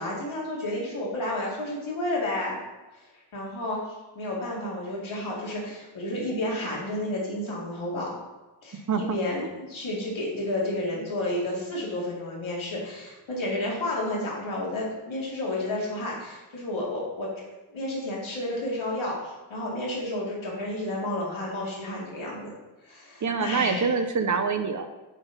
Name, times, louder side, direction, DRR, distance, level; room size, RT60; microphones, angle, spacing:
voice 1, 0.0-2.6 3.3-3.8 4.2-8.2 8.6-17.3 17.7-22.5 22.8-23.9, left 1 dB, 85° left, -4 dB, 2.3 m, -31 dB
voice 2, 23.2-24.9, right 5 dB, 40° right, 8 dB, 0.5 m, -25 dB
8.9 x 4.0 x 4.0 m, 1.1 s
wide cardioid pair, 160°, 46 cm